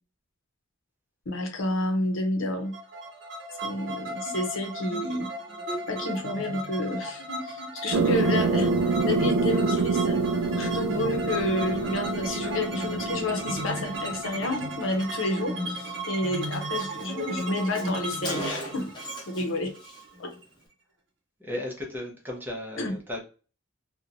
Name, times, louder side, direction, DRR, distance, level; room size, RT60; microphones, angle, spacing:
voice 1, 1.3-2.7 3.6-5.3 5.9-10.2 10.6-18.9 19.3-19.7 20.2-20.3 22.8-22.9, left 1 dB, 75° left, 0.7 m, -30 dB
sound 1, 2.7-20.4, right 1 dB, 65° right, 0.7 m, -35 dB
sound 2, 7.9-15.1, right 4 dB, 85° right, 0.3 m, -27 dB
Car, 15.8-16.0 16.2-16.3 16.5-19.5 19.8-20.0, equal, 20° left, 0.8 m, -38 dB
voice 2, 21.4-23.2, left 1 dB, 10° right, 0.6 m, -35 dB
2.8 x 2.1 x 2.5 m
head